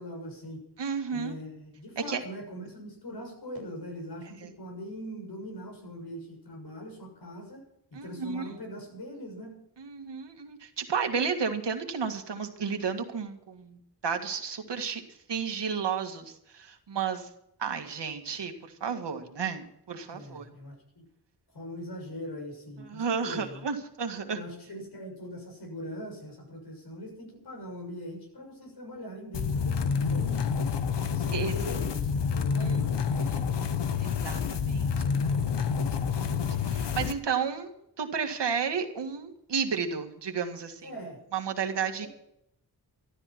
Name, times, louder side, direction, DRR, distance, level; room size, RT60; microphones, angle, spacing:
voice 1, 0.0-0.7 1.1-7.7 7.9-9.6 20.1-21.0 21.5-23.7 24.3-30.6 31.1-33.7 36.1-36.4 40.8-41.2 42.0-42.1, equal, 70° left, 2 dB, 6.9 m, -41 dB
voice 2, 0.8-1.3 2.1-2.2 8.0-8.5 9.8-13.8 14.0-15.0 15.3-17.3 17.6-18.5 18.8-20.5 22.9-24.4 31.3-31.5 32.6-32.8 33.2-33.4 34.0-35.7 36.7-40.9 41.3-42.1, right 6 dB, 85° right, 5 dB, 2.0 m, -32 dB
sound 1, 29.3-37.1, left 6 dB, 85° left, 1.0 m, -28 dB
13.0 x 13.0 x 6.0 m, 0.75 s
wide cardioid pair, 120°, 41 cm